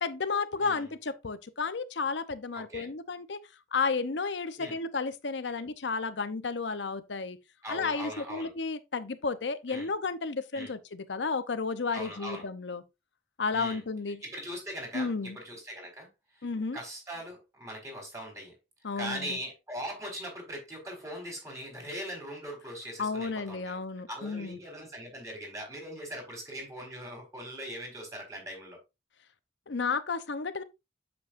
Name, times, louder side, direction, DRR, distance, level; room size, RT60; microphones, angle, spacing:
voice 1, 0.0-3.4 3.7-7.4 7.7-12.8 13.4-14.2 14.9-15.4 16.4-16.8 18.8-19.4 23.0-24.6 29.7-30.6, left 4 dB, 75° left, 0.8 m, -32 dB
voice 2, 2.5-2.9 4.6-4.8 7.6-8.5 9.7-9.9 10.5-10.7 11.9-12.4 13.5-13.8 14.2-16.4 16.7-18.5 19.0-23.8 24.1-28.8, equal, 15° right, 4.4 m, -40 dB
8.5 x 7.2 x 2.6 m
head